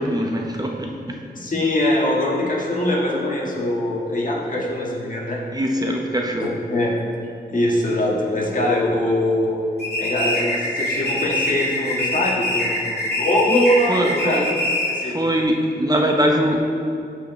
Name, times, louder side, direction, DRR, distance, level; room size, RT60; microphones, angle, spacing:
voice 1, 0.0-1.2 5.5-6.5 13.5-13.6 13.9-14.5 15.1-16.6, equal, 20° right, 1 dB, 0.7 m, -22 dB
voice 2, 1.3-5.4 6.4-6.9 7.5-9.6 10.0-14.4 14.9-15.2, left 1 dB, 50° left, -3 dB, 1.6 m, -22 dB
sound 1, 9.8-15.1, left 1 dB, 70° left, 1.8 m, -24 dB
13.5 x 4.8 x 3.1 m, 2.6 s
wide cardioid pair, 80°, 17 cm